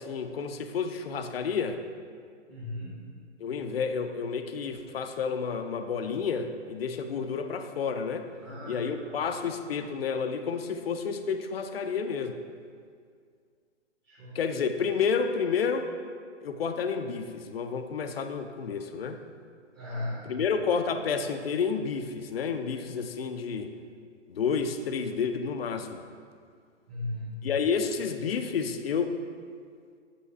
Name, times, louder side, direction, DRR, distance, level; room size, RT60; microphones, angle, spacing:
voice 1, 0.0-1.8 3.4-8.3 8.7-12.4 14.3-15.9 16.4-19.2 20.3-23.7 24.3-26.0 27.4-29.2, left 6 dB, 55° left, 8 dB, 0.5 m, -30 dB
voice 2, 2.5-3.1 8.4-8.9 14.0-14.4 19.7-20.3 26.9-27.5, left 1 dB, 20° right, -9 dB, 0.9 m, -37 dB
8.3 x 3.1 x 5.4 m, 2.1 s
hypercardioid pair, 160°, 37 cm